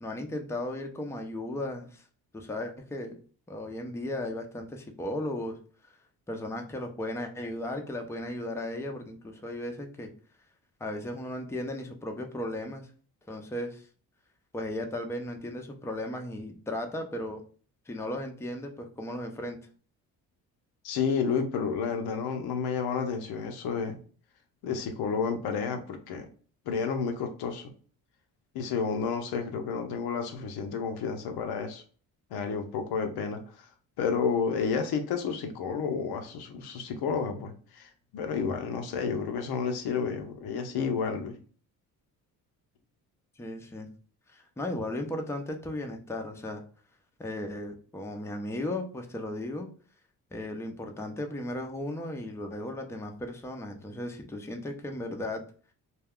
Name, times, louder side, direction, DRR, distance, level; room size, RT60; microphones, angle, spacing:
voice 1, 0.0-2.0 2.3-3.1 3.5-5.6 6.3-10.1 10.8-12.9 13.3-13.8 14.5-17.4 17.9-19.6 43.4-43.9 44.3-46.6 47.2-49.7 50.3-55.4, left 1 dB, 5° left, 3 dB, 0.5 m, -36 dB
voice 2, 20.8-24.0 24.6-26.3 26.7-27.7 28.5-31.8 32.3-33.6 34.0-41.4, left 5 dB, 80° left, 6 dB, 0.6 m, -31 dB
2.3 x 2.3 x 3.5 m, 0.42 s
cardioid pair, 80°, 37 cm